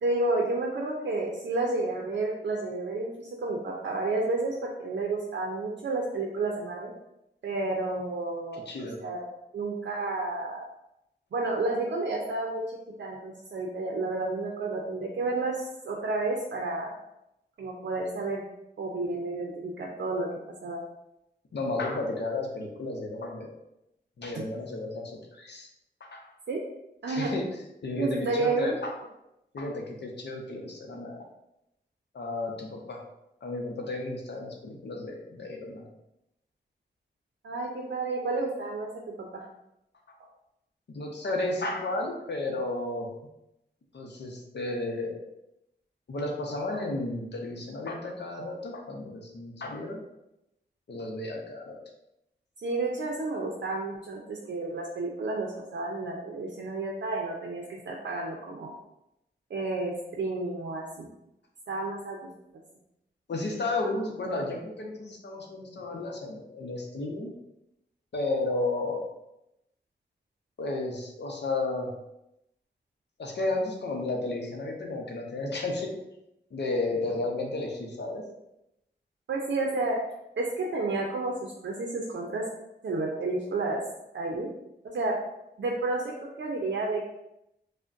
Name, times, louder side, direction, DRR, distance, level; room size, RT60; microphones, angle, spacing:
voice 1, 0.0-6.9 7.4-9.2 9.5-10.6 11.3-16.9 17.6-18.4 18.8-20.3 20.6-20.8 24.3-24.4 26.5-26.6 27.0-27.3 28.0-28.8 37.4-39.4 52.6-58.7 59.5-61.1 61.7-62.3 79.3-80.0 80.4-82.5 82.8-83.8 84.1-84.5 84.8-85.2 85.6-87.0, right 2 dB, 75° right, -1 dB, 0.5 m, -31 dB
voice 2, 8.7-9.0 21.5-23.5 24.2-25.7 26.0-26.3 27.1-27.4 27.8-28.9 29.5-31.2 32.1-33.0 33.4-35.9 40.9-43.1 43.9-45.2 46.1-50.0 50.9-51.8 63.3-67.3 68.1-69.0 70.6-71.9 73.2-75.9 76.5-78.2, left 2 dB, 70° left, 1 dB, 0.7 m, -33 dB
5.0 x 2.1 x 2.5 m, 0.86 s
wide cardioid pair, 95°, 19 cm